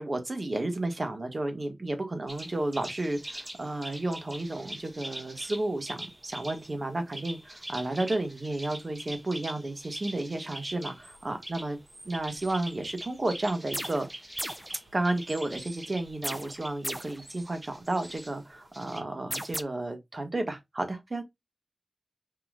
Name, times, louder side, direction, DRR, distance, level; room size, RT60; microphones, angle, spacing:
voice 1, 0.0-11.8 12.1-14.1 14.9-21.2, right 2 dB, 45° right, 1.6 m, -32 dB
sound 1, 2.3-19.0, right 1 dB, 25° right, 1.9 m, -44 dB
sound 2, 13.7-14.1 14.4-14.7 16.2-17.2 19.3-19.6, right 1 dB, 10° right, 0.4 m, -35 dB
5.5 x 3.9 x 2.4 m
wide cardioid pair, 80°, 0 cm